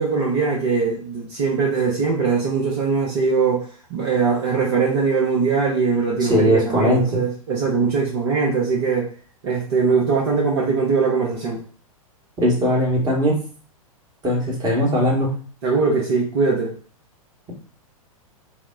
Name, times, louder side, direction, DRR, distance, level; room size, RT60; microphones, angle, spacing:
voice 1, 0.0-9.1 9.4-11.6 15.6-16.7, right 4 dB, 45° right, -3 dB, 0.9 m, -21 dB
voice 2, 6.2-7.0 12.4-13.4 14.2-15.3, equal, 20° right, -2 dB, 1.3 m, -19 dB
4.1 x 2.1 x 3.6 m, 0.43 s
figure-of-eight pair, 100°, 18 cm